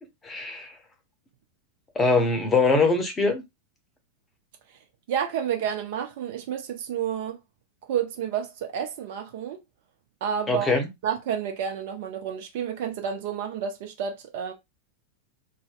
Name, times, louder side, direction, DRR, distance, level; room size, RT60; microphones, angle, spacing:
voice 1, 0.2-0.7 1.9-3.4 10.5-10.9, left 3 dB, 15° left, 0.7 m, -22 dB
voice 2, 5.1-7.4 7.9-9.6 10.2-10.7 11.0-14.5, right 8 dB, 50° right, 0.5 m, -30 dB
2.6 x 2.1 x 2.5 m
figure-of-eight pair, 90°, 0 cm